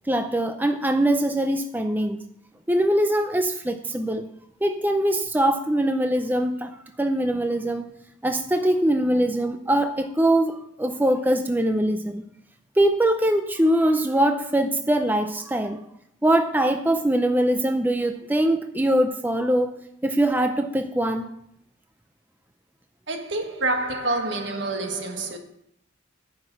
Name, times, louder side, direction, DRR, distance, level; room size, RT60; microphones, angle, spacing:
voice 1, 0.1-2.2 2.7-4.3 4.6-7.9 8.2-12.2 12.8-15.8 16.2-19.8 20.0-21.3, right 1 dB, 10° right, 0.5 m, -22 dB
voice 2, 23.1-25.4, right 2 dB, 65° right, 1.5 m, -27 dB
9.8 x 5.9 x 7.6 m
head